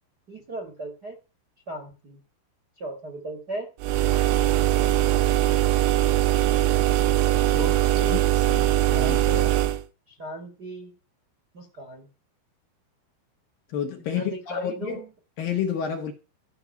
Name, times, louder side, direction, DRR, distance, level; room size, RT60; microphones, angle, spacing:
voice 1, 0.3-1.2 1.7-2.2 2.8-3.7 7.5-8.2 8.9-9.6 10.1-10.9 11.5-12.1 14.0-15.1, right 1 dB, 35° right, 1.8 m, -37 dB
sound 1, 3.8-9.8, right 13 dB, 85° right, 3.4 m, -21 dB
voice 2, 8.5-9.2 13.7-15.0 15.4-16.1, left 8 dB, 60° left, 2.8 m, -30 dB
13.5 x 5.9 x 7.1 m
omnidirectional pair, 5.5 m